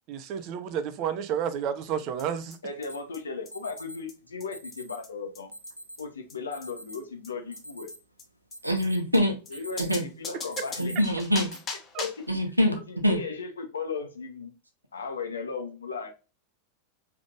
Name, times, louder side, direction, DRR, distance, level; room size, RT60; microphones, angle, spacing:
voice 1, 0.1-2.6 11.9-12.0, right 8 dB, 40° right, 0.7 m, -31 dB
sound 1, 2.2-2.3 2.5-2.6 2.8-2.9 3.1-3.2 3.5-3.6 3.8-3.9 4.1-4.2 4.4-4.5 4.7-4.8 5.0-5.1 5.4-5.5 5.7-5.8 6.0-6.1 6.3-6.4 6.6-6.7 6.9-7.0 7.2-7.3 7.6-7.7 7.9-8.0 8.2-8.3 8.5-8.6 8.8-8.9 9.1-9.2 9.5-9.6 9.8-12.3, left 4 dB, 25° left, 1.0 m, -39 dB
voice 2, 2.6-5.5 6.0-7.9 9.5-10.9 12.0-12.1 12.7-14.5 14.9-16.1, left 4 dB, 70° left, 1.0 m, -36 dB
Alarm, 2.9-3.0 3.5-4.0 4.5-5.0 5.5-6.0 6.5-7.0 7.4-8.1 8.5-9.0 9.4-10.1 10.5-11.0 11.5-11.6 12.4-12.7, equal, 90° left, 0.7 m, -43 dB
voice 3, 8.6-9.4 9.8-10.0 10.8-11.5 12.3-12.8 13.0-13.2, equal, 85° right, 1.0 m, -24 dB
4.9 x 3.4 x 2.4 m
figure-of-eight pair, 90°, 0 cm